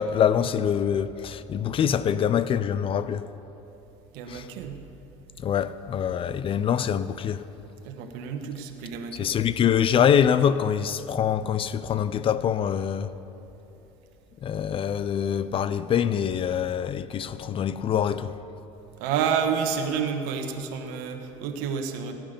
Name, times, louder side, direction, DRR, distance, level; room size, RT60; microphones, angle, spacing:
voice 1, 0.0-3.3 4.3-4.5 5.4-7.4 9.1-13.1 14.4-18.3, left 8 dB, 35° left, 0.6 m, -24 dB
voice 2, 4.1-4.8 7.8-9.3 19.0-22.1, right 7 dB, 75° right, 1.3 m, -29 dB
16.0 x 10.5 x 5.1 m
supercardioid pair, 100°, 16 cm